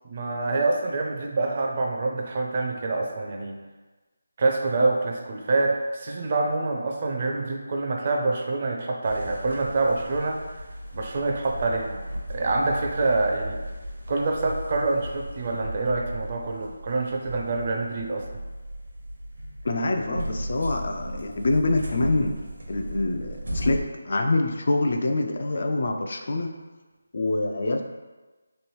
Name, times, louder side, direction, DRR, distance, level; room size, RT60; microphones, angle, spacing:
voice 1, 0.1-3.6 4.4-10.4 10.9-12.0 12.3-13.6 14.1-18.2, right 3 dB, 40° right, 1 dB, 0.4 m, -26 dB
sound 1, 9.0-23.8, equal, 75° right, 0.7 m, -36 dB
voice 2, 19.6-22.4 22.7-26.6 27.1-27.8, left 2 dB, 55° left, 4 dB, 0.3 m, -25 dB
3.1 x 2.6 x 3.0 m, 1.2 s
figure-of-eight pair, 165°, 0 cm